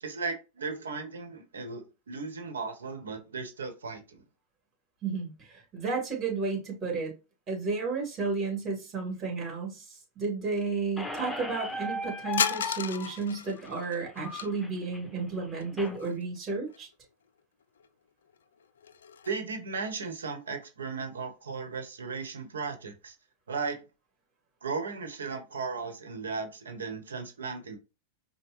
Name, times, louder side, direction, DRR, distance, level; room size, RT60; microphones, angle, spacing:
voice 1, 0.0-4.2 19.3-23.1 23.5-23.8 24.6-27.8, right 4 dB, 90° right, 1.0 m, -36 dB
voice 2, 5.0-7.1 7.5-16.9, right 4 dB, 30° right, 2.4 m, -32 dB
Squeak, 11.0-16.0, left 2 dB, 5° left, 0.7 m, -38 dB
sound 1, 12.3-14.5 15.6-16.4 16.7-16.8 17.8-17.9 18.3-19.4, left 7 dB, 85° left, 0.3 m, -34 dB
5.3 x 2.1 x 3.0 m
hypercardioid pair, 105°, 0 cm